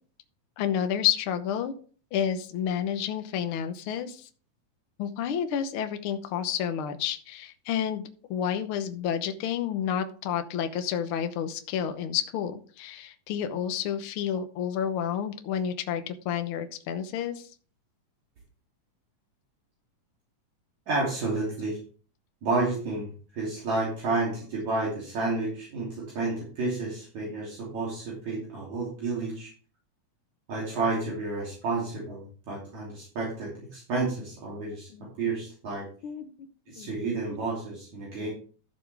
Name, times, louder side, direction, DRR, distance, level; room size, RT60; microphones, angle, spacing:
voice 1, 0.6-1.7 2.1-4.3 5.0-17.5 34.9-35.1 36.0-36.3 36.8-37.0, left 9 dB, 70° left, 8 dB, 1.3 m, -30 dB
voice 2, 20.9-21.8 22.4-29.5 30.5-34.9 35.2-35.9 36.7-38.3, right 3 dB, 60° right, -5 dB, 4.3 m, -30 dB
13.5 x 7.1 x 3.4 m, 0.41 s
omnidirectional pair, 3.7 m